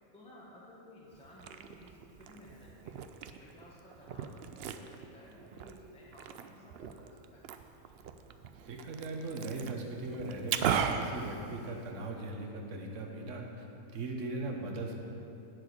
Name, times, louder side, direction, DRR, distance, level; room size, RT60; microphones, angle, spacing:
voice 1, 0.1-2.9 3.4-7.4, left 1 dB, 5° left, -5 dB, 1.2 m, -55 dB
Liquid, 1.1-12.1, right 7 dB, 85° right, 0.5 m, -39 dB
voice 2, 8.6-13.6 13.9-15.0, right 2 dB, 55° right, 1 dB, 1.4 m, -39 dB
10.5 x 5.0 x 8.1 m, 2.8 s
omnidirectional pair, 1.6 m